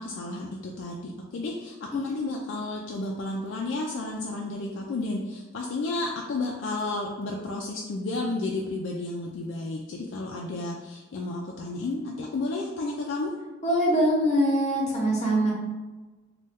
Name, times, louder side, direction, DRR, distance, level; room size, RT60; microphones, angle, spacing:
voice 1, 0.0-13.3, left 2 dB, 65° left, -1 dB, 0.3 m, -32 dB
voice 2, 13.6-15.5, equal, 35° left, -3 dB, 0.8 m, -23 dB
3.1 x 2.2 x 3.4 m, 1.2 s
head